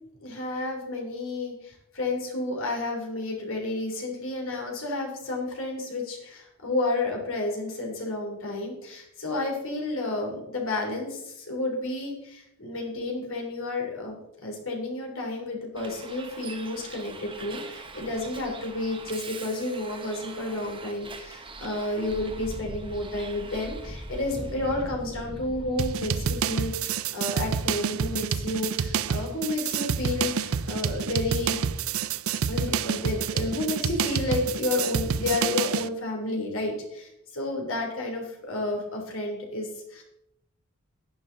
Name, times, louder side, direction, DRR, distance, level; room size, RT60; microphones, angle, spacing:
voice 1, 0.2-31.6 32.5-40.0, left 2 dB, 70° left, 1 dB, 3.1 m, -31 dB
Bus, 15.8-26.3, right 2 dB, 25° right, 1.1 m, -41 dB
sound 1, 25.8-35.9, right 7 dB, 75° right, 0.5 m, -28 dB
11.0 x 10.0 x 3.9 m, 0.81 s
head